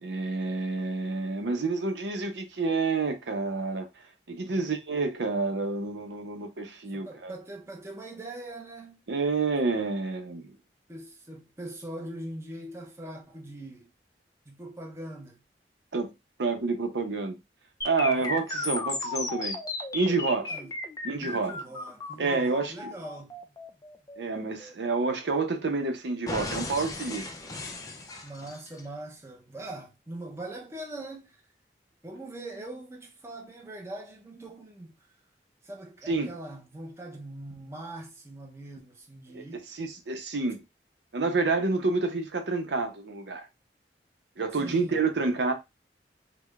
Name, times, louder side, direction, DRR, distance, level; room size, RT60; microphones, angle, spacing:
voice 1, 0.0-3.9 4.3-7.3 9.1-10.6 15.9-16.1 16.4-17.4 17.8-19.6 19.9-20.5 21.0-21.6 22.2-22.9 24.2-27.2 36.1-36.3 39.3-40.6 41.1-43.5 44.4-45.5, right 3 dB, 85° right, 0.7 m, -29 dB
voice 2, 6.9-9.0 10.9-13.9 14.5-15.4 18.0-18.3 20.5-20.8 21.2-23.4 28.2-31.4 32.0-34.9 35.6-39.7 44.6-45.0, right 1 dB, 15° right, 0.7 m, -42 dB
sound 1, 17.8-25.8 26.3-28.8, left 3 dB, 20° left, 0.5 m, -36 dB
4.7 x 2.1 x 2.3 m
head